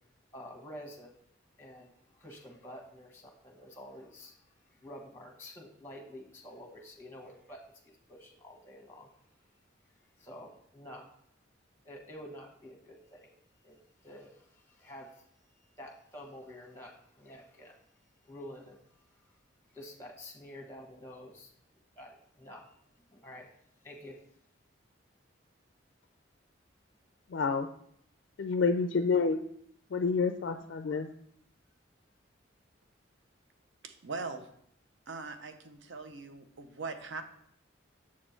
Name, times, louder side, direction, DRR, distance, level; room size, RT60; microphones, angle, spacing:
voice 1, 0.3-1.1 1.6-4.3 4.7-7.6 7.8-9.1 10.2-11.1 11.8-13.3 13.6-15.2 15.8-17.8 18.3-18.8 19.7-21.5 22.0-22.7 23.1-23.5 23.8-24.2, left 1 dB, 10° left, 0 dB, 1.2 m, -49 dB
voice 2, 27.3-27.7 28.4-29.4 29.9-31.1, left 4 dB, 65° left, 8 dB, 0.4 m, -28 dB
voice 3, 33.8-34.5 35.1-37.2, right 4 dB, 70° right, 8 dB, 0.6 m, -41 dB
7.3 x 4.4 x 4.4 m, 0.68 s
head